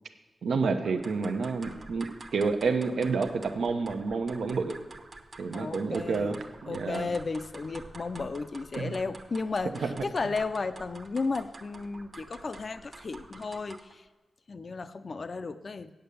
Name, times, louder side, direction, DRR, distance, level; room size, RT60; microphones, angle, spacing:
voice 1, 0.4-4.7 5.4-7.1 8.7-8.9 9.7-9.9, right 4 dB, 80° right, 6 dB, 0.8 m, -29 dB
sound 1, 0.8-14.0, right 3 dB, 40° right, 1.0 m, -48 dB
voice 2, 5.5-6.4 6.7-14.0 14.5-15.9, left 4 dB, 45° left, 11 dB, 0.5 m, -34 dB
8.6 x 8.0 x 6.9 m, 1.2 s
wide cardioid pair, 95°, 0 cm